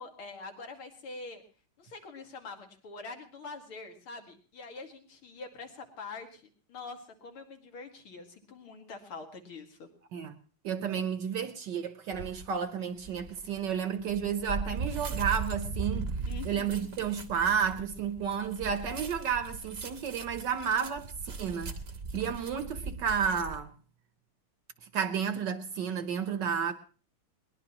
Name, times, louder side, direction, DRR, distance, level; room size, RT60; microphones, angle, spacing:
voice 1, 0.0-1.4 1.8-6.4 6.7-9.9 16.3-16.9, left 4 dB, 75° left, 2.9 m, -45 dB
voice 2, 10.6-16.1 16.4-21.7 22.1-23.7 24.9-26.7, right 7 dB, 60° right, 1.4 m, -31 dB
sound 1, 12.1-12.5 13.0-23.6, right 3 dB, 40° right, 1.0 m, -38 dB
21.5 x 19.5 x 3.0 m
omnidirectional pair, 2.4 m